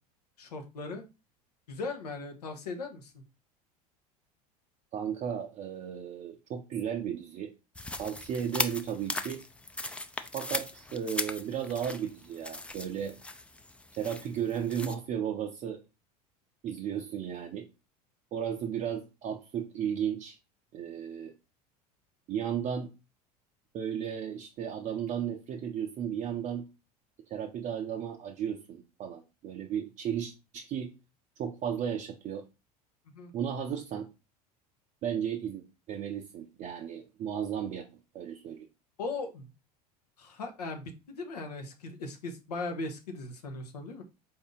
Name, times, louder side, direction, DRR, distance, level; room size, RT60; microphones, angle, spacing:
voice 1, 0.4-1.0 1.7-3.2 33.1-33.3 39.0-39.5 40.2-44.0, left 3 dB, 80° left, 0.9 m, -38 dB
voice 2, 4.9-7.5 8.0-9.4 10.3-13.2 14.0-15.8 16.6-17.7 18.3-20.4 20.7-21.3 22.3-22.9 23.7-26.7 27.3-30.9 31.4-32.5 33.3-34.1 35.0-37.9 38.1-38.7, right 8 dB, 40° right, 0.6 m, -34 dB
sound 1, 7.8-15.0, left 2 dB, 5° left, 0.4 m, -38 dB
4.1 x 2.7 x 3.6 m
hypercardioid pair, 75°, 20 cm